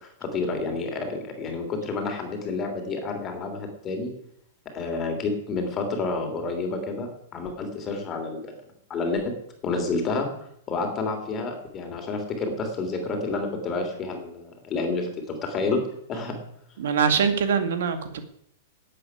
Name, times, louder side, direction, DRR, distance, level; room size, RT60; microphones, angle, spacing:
voice 1, 0.0-4.1 4.7-8.5 8.9-9.3 9.6-10.3 10.7-15.8 16.1-16.4, left 3 dB, 20° left, 4 dB, 3.4 m, -29 dB
voice 2, 16.8-18.2, right 6 dB, 75° right, 9 dB, 2.0 m, -23 dB
11.5 x 8.7 x 9.7 m, 0.72 s
supercardioid pair, 155°, 0 cm